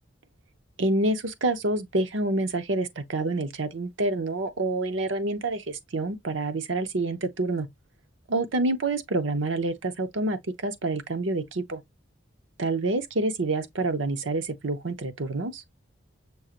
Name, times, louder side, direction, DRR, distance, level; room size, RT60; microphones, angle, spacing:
voice 1, 0.8-7.7 8.3-11.8 12.6-15.6, right 2 dB, 85° right, 0.8 m, -27 dB
6.3 x 2.5 x 2.9 m
head